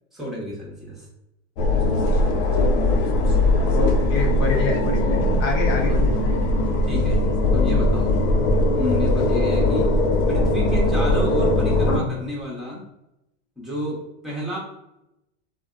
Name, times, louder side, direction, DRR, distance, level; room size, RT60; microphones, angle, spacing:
voice 1, 0.1-1.1 5.9-6.0 6.8-7.2 7.5-8.2 8.7-9.9 10.3-12.8 13.6-14.6, left 1 dB, ahead, -5 dB, 1.0 m, -30 dB
sound 1, 1.6-12.0, left 2 dB, 65° left, 0.6 m, -20 dB
voice 2, 3.7-6.3 11.9-12.1, left 3 dB, 40° left, 0 dB, 0.8 m, -27 dB
2.6 x 2.1 x 2.4 m, 0.87 s
supercardioid pair, 120°, 40 cm